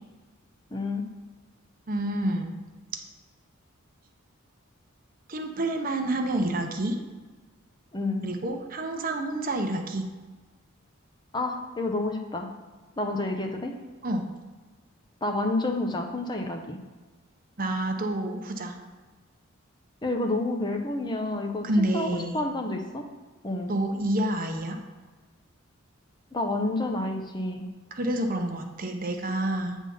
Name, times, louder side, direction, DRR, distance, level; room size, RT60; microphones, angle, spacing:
voice 1, 0.7-1.1 7.9-8.2 11.3-12.5 13.0-13.7 15.2-16.8 20.0-23.1 23.4-23.7 26.3-27.7, left 2 dB, 20° left, 3 dB, 0.7 m, -29 dB
voice 2, 1.9-2.5 5.3-7.0 8.2-10.1 14.0-14.3 17.6-18.8 21.6-22.4 23.7-24.8 27.9-29.8, right 1 dB, 40° right, 4 dB, 0.8 m, -28 dB
8.9 x 3.6 x 5.5 m, 1.3 s
head